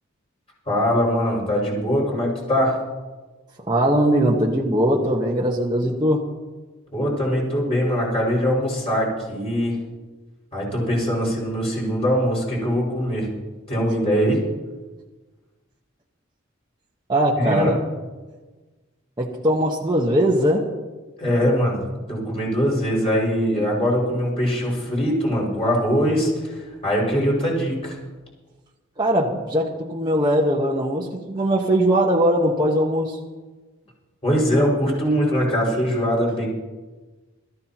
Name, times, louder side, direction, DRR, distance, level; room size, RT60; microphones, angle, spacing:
voice 1, 0.7-2.8 6.9-9.8 10.5-13.3 13.7-14.4 17.4-17.8 21.2-21.8 22.1-28.0 34.2-36.5, equal, 30° left, -4 dB, 5.9 m, -22 dB
voice 2, 3.7-6.2 17.1-17.8 19.2-20.7 29.0-33.2, right 1 dB, 20° right, -3 dB, 1.3 m, -20 dB
21.0 x 14.0 x 3.0 m, 1.3 s
head